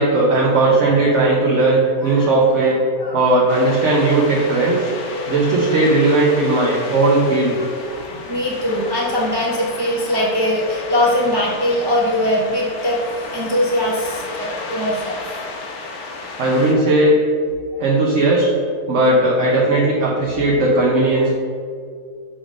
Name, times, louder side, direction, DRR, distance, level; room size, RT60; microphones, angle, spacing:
voice 1, 0.0-2.8 3.1-4.9 5.3-7.5 16.4-17.2 17.8-18.4 18.9-21.3, right 2 dB, 55° right, -3 dB, 1.2 m, -16 dB
voice 2, 2.0-2.4 3.0-3.4 3.9-4.1 6.5-6.6 7.6-13.0 13.3-15.6 16.3-16.4 17.7-17.8 21.1-21.2, left 1 dB, 20° right, -4 dB, 0.7 m, -22 dB
sound 1, 3.5-16.7, left 3 dB, 55° left, 1.0 m, -33 dB
7.2 x 3.5 x 5.1 m, 2.2 s
omnidirectional pair, 1.6 m